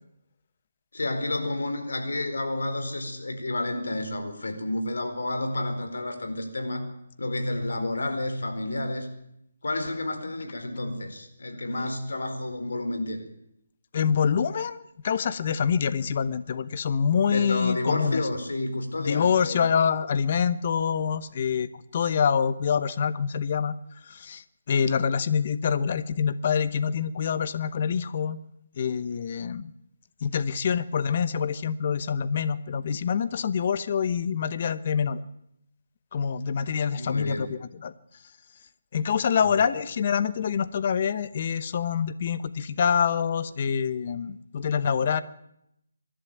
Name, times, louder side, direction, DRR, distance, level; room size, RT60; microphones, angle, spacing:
voice 1, 0.9-6.9 7.2-9.1 9.6-13.2 17.3-19.7 36.9-37.5 39.4-39.7, left 2 dB, 80° left, 6 dB, 4.7 m, -30 dB
voice 2, 13.9-18.2 19.0-23.7 24.0-28.4 28.8-29.7 30.2-35.2 36.1-37.9 38.9-45.2, left 7 dB, 35° left, 14 dB, 0.9 m, -26 dB
25.0 x 11.5 x 9.2 m, 0.79 s
hypercardioid pair, 170°, 0 cm